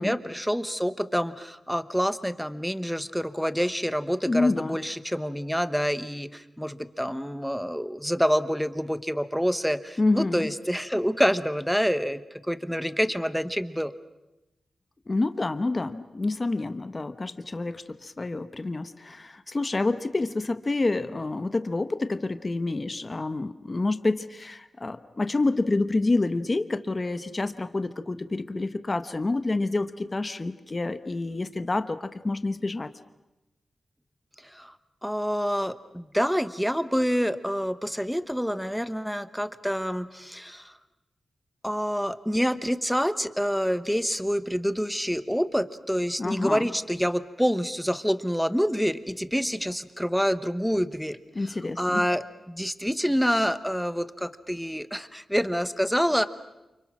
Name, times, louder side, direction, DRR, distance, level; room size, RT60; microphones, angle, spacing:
voice 1, 0.0-13.9 34.4-34.8 35.0-40.7 41.6-51.2 51.8-56.3, equal, ahead, 12 dB, 1.1 m, -27 dB
voice 2, 4.2-4.8 10.0-10.5 15.1-32.9 46.2-46.7 51.3-52.0, left 2 dB, 25° left, 10 dB, 1.1 m, -28 dB
29.5 x 29.5 x 6.1 m, 0.97 s
wide cardioid pair, 155°, 0 cm